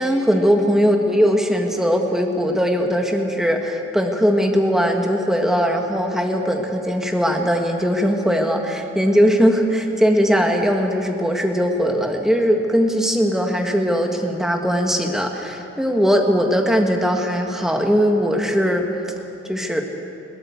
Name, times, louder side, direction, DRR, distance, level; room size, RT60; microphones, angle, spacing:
voice 1, 0.0-18.9 19.5-19.8, equal, ahead, 2 dB, 1.7 m, -19 dB
21.5 x 17.5 x 8.1 m, 2.9 s
head